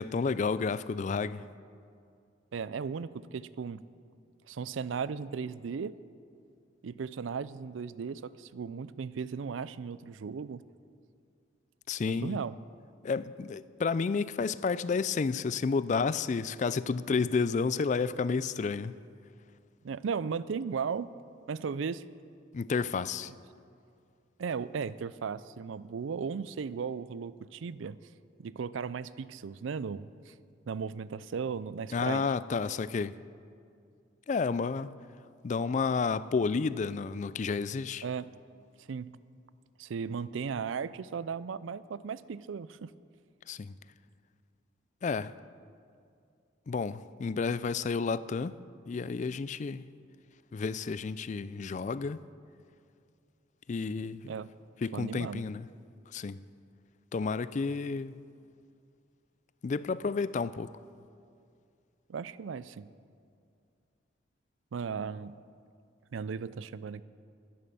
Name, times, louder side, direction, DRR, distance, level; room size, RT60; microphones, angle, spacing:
voice 1, 0.0-1.5 11.9-12.4 13.0-19.0 22.5-23.3 31.9-33.2 34.3-34.9 35.4-38.0 43.5-43.7 45.0-45.3 46.7-48.6 48.9-49.8 50.5-52.2 53.7-54.3 54.8-55.7 56.1-56.4 57.1-58.2 59.6-60.7, left 4 dB, 40° left, 0.3 m, -31 dB
voice 2, 2.5-3.8 4.5-5.9 6.8-10.6 12.1-12.6 19.8-21.1 21.5-22.0 24.4-28.0 28.4-30.3 30.7-32.3 38.0-38.3 38.8-39.2 39.8-42.9 54.0-54.5 54.9-55.5 62.1-62.9 64.7-65.4 66.1-67.0, right 6 dB, 85° right, 0.4 m, -36 dB
12.5 x 10.5 x 6.9 m
head